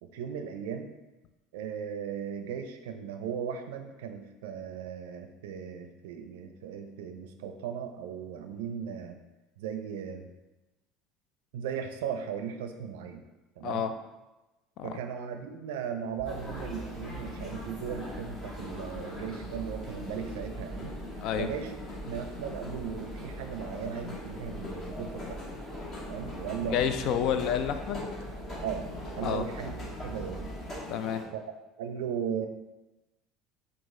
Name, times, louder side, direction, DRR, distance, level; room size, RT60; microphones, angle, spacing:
voice 1, 0.0-0.9 1.5-9.2 9.6-10.3 11.5-13.2 13.6-13.9 14.8-20.9 21.4-21.7 22.0-25.4 26.0-27.1 28.6-28.9 29.1-29.8 30.0-30.6 31.3-31.4 31.8-32.5, right 7 dB, 85° right, 6 dB, 0.4 m, -37 dB
sound 1, 16.2-31.2, left 2 dB, 35° left, 1.3 m, -42 dB
sound 2, 16.2-30.7, right 2 dB, ahead, 0.7 m, -44 dB
voice 2, 26.7-28.0 29.2-29.5 30.9-31.2, left 8 dB, 60° left, 9 dB, 0.3 m, -29 dB
4.8 x 2.4 x 3.6 m, 1.1 s
supercardioid pair, 100°, 0 cm